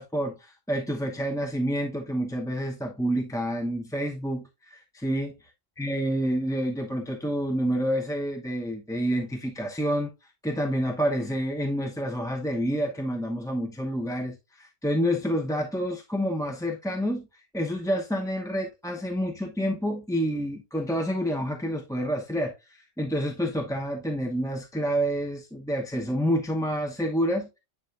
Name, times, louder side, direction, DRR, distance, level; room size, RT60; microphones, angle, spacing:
voice 1, 0.0-5.3 5.8-10.1 10.4-17.3 17.5-27.5, equal, 5° left, 0.7 m, -28 dB
9.9 x 4.3 x 2.5 m
omnidirectional pair, 1.3 m